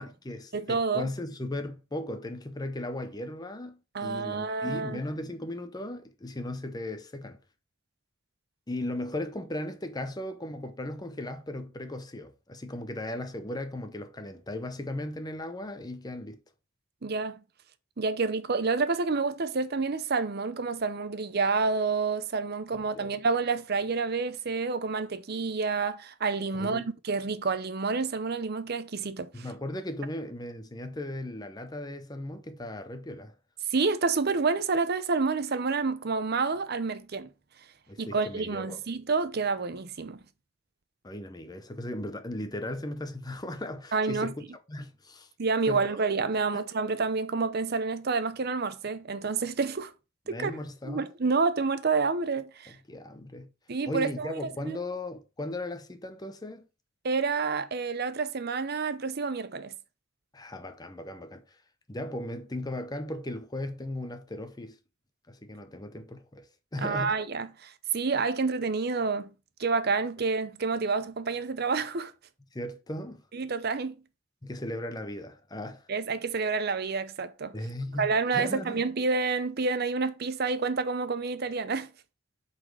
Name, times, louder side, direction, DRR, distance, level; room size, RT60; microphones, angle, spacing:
voice 1, 0.0-7.4 8.7-16.4 22.7-23.1 26.5-26.9 29.3-33.3 37.9-38.8 41.0-45.3 45.7-46.0 46.5-46.6 50.3-51.1 52.7-53.5 53.9-56.7 60.3-61.6 61.9-64.8 65.3-67.1 72.5-73.2 74.4-75.9 77.5-78.8, left 1 dB, 20° left, 0.7 m, -37 dB
voice 2, 0.5-1.1 3.9-5.0 17.0-17.4 18.0-29.4 33.7-37.3 38.0-40.2 43.9-44.3 45.4-49.9 50.3-50.5 50.8-52.8 53.7-54.8 57.0-59.7 66.8-69.3 69.6-72.1 73.3-73.9 75.9-77.5 78.0-81.9, right 4 dB, 50° right, 0.7 m, -29 dB
7.8 x 4.2 x 4.9 m
head